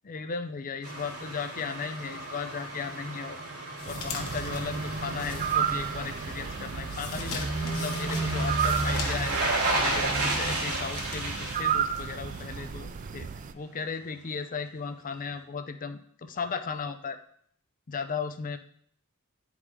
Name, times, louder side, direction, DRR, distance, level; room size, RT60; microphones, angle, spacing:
voice 1, 0.0-3.4 3.8-9.4 9.8-13.3 13.5-17.2 17.9-18.6, left 5 dB, 40° left, 9 dB, 0.5 m, -36 dB
sound 1, 0.8-12.7 13.0-13.1, right 2 dB, 70° right, 2.7 m, -32 dB
sound 2, 3.8-6.2 6.5-12.4, left 5 dB, 70° left, 1.1 m, -43 dB
sound 3, 3.9-13.5, right 8 dB, 35° right, 0.3 m, -34 dB
9.5 x 4.8 x 3.6 m, 0.64 s
head